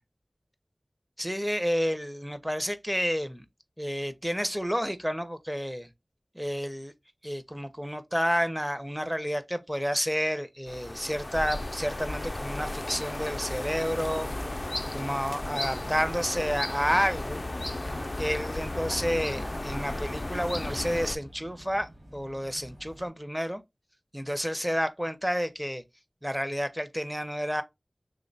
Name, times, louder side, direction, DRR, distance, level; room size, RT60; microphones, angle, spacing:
voice 1, 1.2-3.4 3.8-5.9 6.3-6.9 7.2-14.3 14.9-17.4 18.2-23.6 24.1-25.8 26.2-27.6, equal, ahead, 0.5 m, -30 dB
sound 1, 10.7-21.2, left 2 dB, 50° left, 0.3 m, -34 dB
Vehicle, 14.0-23.1, equal, 30° right, 1.0 m, -47 dB
3.2 x 2.1 x 3.9 m
wide cardioid pair, 45°, 0 cm